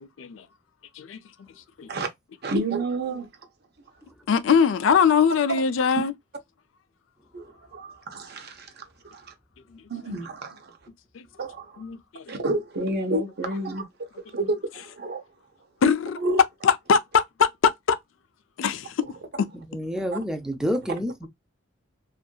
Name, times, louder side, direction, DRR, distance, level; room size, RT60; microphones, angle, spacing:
voice 1, 2.4-3.3 7.3-9.3 9.9-10.8 11.4-11.8 12.3-15.2 16.2-16.4, right 2 dB, 55° right, 0.7 m, -30 dB
voice 2, 4.3-6.1 11.8-12.3 15.8-16.2 16.6-17.5 17.9-18.0 18.6-18.9, left 6 dB, 70° left, 0.4 m, -21 dB
voice 3, 19.5-21.3, equal, 5° right, 0.5 m, -28 dB
2.7 x 2.4 x 2.3 m
head